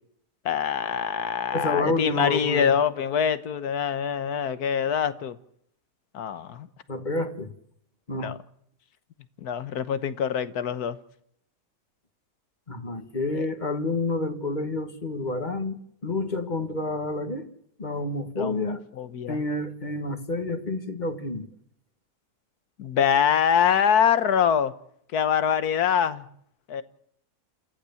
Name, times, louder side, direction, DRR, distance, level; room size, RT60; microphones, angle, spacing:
voice 1, 0.4-5.4 6.1-6.7 8.2-8.4 9.4-11.0 13.3-13.5 18.4-18.6 19.0-19.4 22.8-24.7 25.1-26.3 26.7-26.8, left 8 dB, 70° left, 1.6 m, -24 dB
voice 2, 1.5-2.7 6.9-7.5 8.1-8.3 12.7-17.5 17.8-18.8 19.3-21.5, left 2 dB, 30° left, 1.7 m, -29 dB
28.5 x 15.0 x 7.1 m
omnidirectional pair, 1.7 m